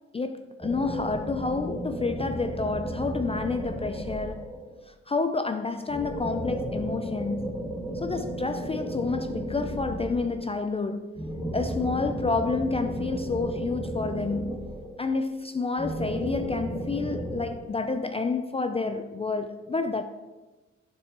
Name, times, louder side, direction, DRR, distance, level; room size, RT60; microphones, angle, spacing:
voice 1, 0.1-4.5 4.9-7.6 7.9-11.2 11.5-14.6 15.0-20.0, left 4 dB, 20° left, 0.3 m, -29 dB
sound 1, 0.6-4.8 5.9-10.5 11.1-15.2 15.8-17.5, right 1 dB, ahead, 1.3 m, -33 dB
8.6 x 6.7 x 2.9 m
cardioid pair, 90°, 30 cm